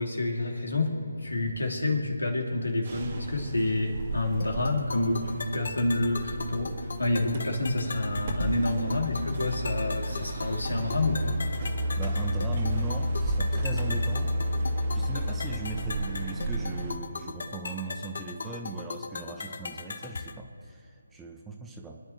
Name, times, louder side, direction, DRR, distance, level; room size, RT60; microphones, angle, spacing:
voice 1, 0.0-11.3, left 2 dB, 85° left, 1 dB, 3.0 m, -28 dB
sound 1, 2.9-16.9, equal, 40° right, 2.0 m, -32 dB
sound 2, 4.4-20.4, left 4 dB, 55° left, 0.9 m, -39 dB
voice 2, 12.0-14.3 14.9-22.0, right 3 dB, 10° right, 2 dB, 1.0 m, -38 dB
27.5 x 10.5 x 3.4 m, 2.9 s
figure-of-eight pair, 155°, 0 cm